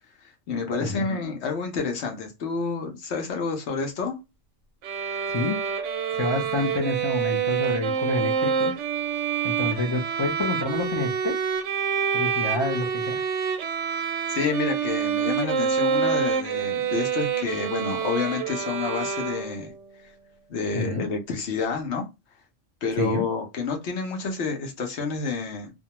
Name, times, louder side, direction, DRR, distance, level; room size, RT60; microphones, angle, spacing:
voice 1, 0.2-4.2 14.3-19.7 20.5-22.1 22.8-25.7, left 5 dB, 70° left, 1.0 m, -29 dB
sound 1, 4.8-19.8, right 7 dB, 85° right, 0.9 m, -27 dB
voice 2, 5.3-5.6 6.1-8.7 9.4-11.4 12.1-13.2 20.7-21.1 22.9-23.3, left 2 dB, 45° left, 0.3 m, -28 dB
2.4 x 2.2 x 2.8 m
omnidirectional pair, 1.2 m